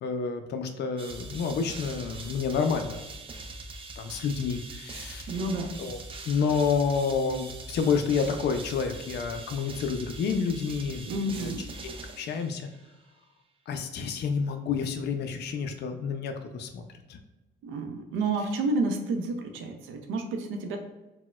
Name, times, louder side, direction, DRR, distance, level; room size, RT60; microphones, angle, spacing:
voice 1, 0.0-3.0 4.0-5.3 5.8-6.0 6.3-11.0 11.4-11.5 11.8-12.7 13.7-16.8 17.1-17.2, left 5 dB, 60° left, 6 dB, 0.4 m, -29 dB
sound 1, 1.0-12.9, right 3 dB, 30° right, 0.4 m, -42 dB
voice 2, 5.3-5.7 11.0-11.6 17.6-20.8, right 2 dB, 85° right, 5 dB, 0.5 m, -30 dB
4.1 x 2.1 x 2.2 m, 1.1 s
cardioid pair, 90°, 20 cm